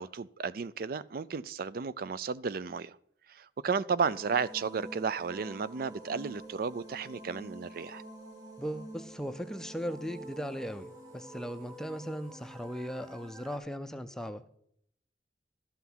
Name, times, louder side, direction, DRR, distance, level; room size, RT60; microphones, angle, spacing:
voice 1, 0.0-3.0 3.3-8.0, right 5 dB, 55° right, 0.4 m, -33 dB
sound 1, 4.0-13.6, right 1 dB, 20° right, 2.5 m, -48 dB
voice 2, 8.6-14.5, equal, 5° left, 0.5 m, -38 dB
12.5 x 5.8 x 6.1 m
head